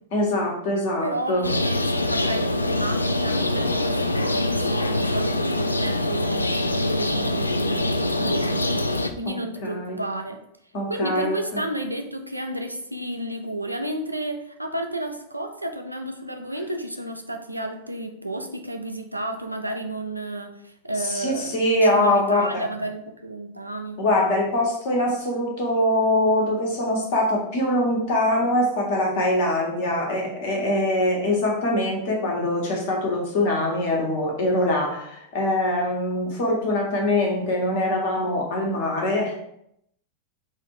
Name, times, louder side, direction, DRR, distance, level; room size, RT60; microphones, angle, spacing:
voice 1, 0.1-1.5 9.2-9.3 9.6-10.0 10.7-11.4 21.0-22.6 24.0-39.4, left 1 dB, 50° left, -1 dB, 1.3 m, -23 dB
voice 2, 1.0-10.4 10.9-24.0, right 1 dB, 85° right, 4 dB, 0.4 m, -32 dB
sound 1, 1.4-9.1, left 1 dB, 80° left, 0.3 m, -24 dB
4.0 x 2.6 x 4.6 m, 0.75 s
figure-of-eight pair, 90°, 0 cm